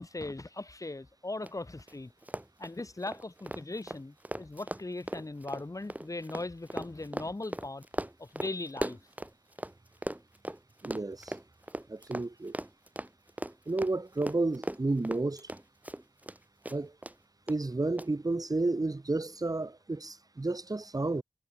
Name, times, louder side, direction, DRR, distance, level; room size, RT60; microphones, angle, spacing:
voice 1, 0.0-2.1 2.6-7.8 8.2-9.0, left 2 dB, 35° left, 3.4 m, -39 dB
Run, 1.4-1.5 1.8-1.9 2.2-9.7 10.0-16.4 16.6-17.1 17.5-17.6 18.0-18.1, right 1 dB, 15° right, 6.0 m, -38 dB
voice 2, 10.8-11.3 11.9-12.5 13.7-15.5 16.7-16.9 17.5-21.2, right 2 dB, 40° right, 4.5 m, -31 dB
wide cardioid pair, 70°, 10 cm